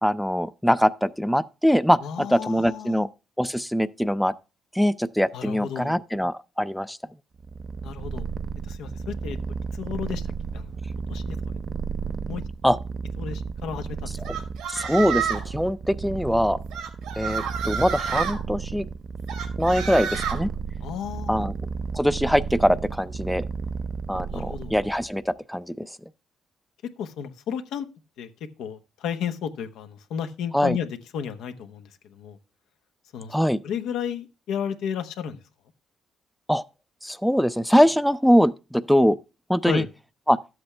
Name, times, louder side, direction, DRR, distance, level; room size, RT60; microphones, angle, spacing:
voice 1, 0.0-3.1 3.4-4.3 4.7-7.0 12.6-12.8 14.7-16.6 17.2-18.8 19.6-20.5 21.3-21.5 21.9-23.4 24.1-25.9 30.5-30.8 33.3-33.6 36.5-36.6 37.0-39.2 39.5-39.9 40.3-40.4, equal, ahead, 0.5 m, -22 dB
voice 2, 2.0-3.0 5.3-6.0 7.8-8.2 8.7-9.4 9.7-10.3 10.5-10.7 11.1-11.4 12.3-12.4 13.2-14.1 20.8-21.4 24.3-24.7 27.0-27.9 28.2-28.3 28.6-32.4 33.1-33.3 33.6-35.4 39.6-39.9, left 8 dB, 85° left, 1.1 m, -32 dB
Purr, 7.4-25.1, right 5 dB, 50° right, 0.5 m, -33 dB
sound 1, 14.2-15.5 16.7-18.4 19.3-20.4, right 7 dB, 90° right, 2.3 m, -29 dB
12.0 x 7.9 x 3.3 m
cardioid pair, 90°, 0 cm